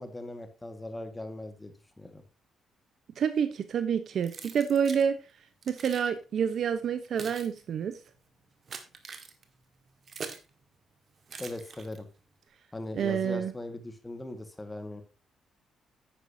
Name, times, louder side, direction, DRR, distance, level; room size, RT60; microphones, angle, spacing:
voice 1, 0.0-2.2 11.4-12.1 12.7-15.0, left 2 dB, 15° left, 8 dB, 1.8 m, -40 dB
voice 2, 3.2-5.2 5.7-7.9 12.9-13.5, right 7 dB, 60° right, 10 dB, 0.9 m, -28 dB
Keys jangling, 4.2-5.1 5.6-6.1 6.8-10.5 11.3-12.2, right 5 dB, 45° right, 1.8 m, -44 dB
10.0 x 9.1 x 2.8 m, 0.31 s
cardioid pair, 90°, 0 cm